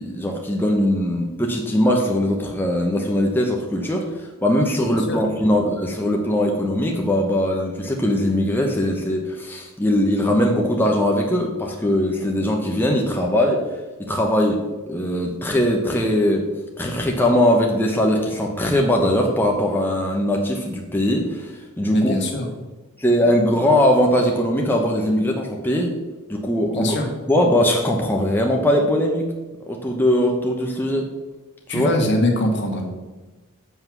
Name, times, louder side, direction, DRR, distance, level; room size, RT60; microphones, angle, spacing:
voice 1, 0.0-13.6 14.0-14.6 14.9-16.5 16.8-22.1 23.0-25.9 26.3-27.0 27.3-29.3 29.7-31.1 31.7-31.9, left 1 dB, 10° left, 0 dB, 0.8 m, -20 dB
voice 2, 21.9-22.5 26.7-27.1 31.7-32.8, left 1 dB, 55° left, 1 dB, 1.7 m, -22 dB
7.7 x 5.6 x 5.9 m, 1.2 s
head